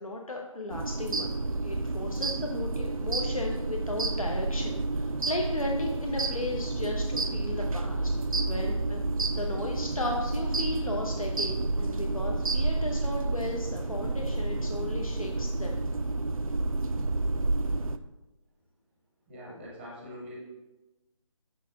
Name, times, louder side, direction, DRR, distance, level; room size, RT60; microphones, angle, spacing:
voice 1, 0.0-8.1 8.5-15.8, left 1 dB, 85° left, 0 dB, 0.9 m, -35 dB
sound 1, 0.7-18.0, right 2 dB, 80° right, 0.4 m, -30 dB
voice 2, 19.3-20.4, equal, 5° right, -4 dB, 0.7 m, -43 dB
6.5 x 6.4 x 2.8 m, 1.1 s
figure-of-eight pair, 155°, 17 cm